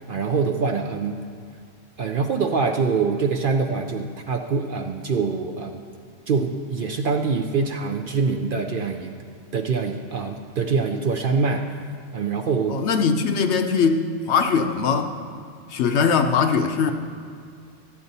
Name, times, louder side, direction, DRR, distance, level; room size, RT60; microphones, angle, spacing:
voice 1, 0.1-1.2 2.0-5.9 6.3-9.1 9.5-11.7 12.1-12.8, right 4 dB, 55° right, 5 dB, 0.6 m, -24 dB
voice 2, 12.7-15.1 15.7-16.9, left 5 dB, 65° left, 6 dB, 0.9 m, -21 dB
13.5 x 8.8 x 4.0 m, 2.2 s
omnidirectional pair, 1.3 m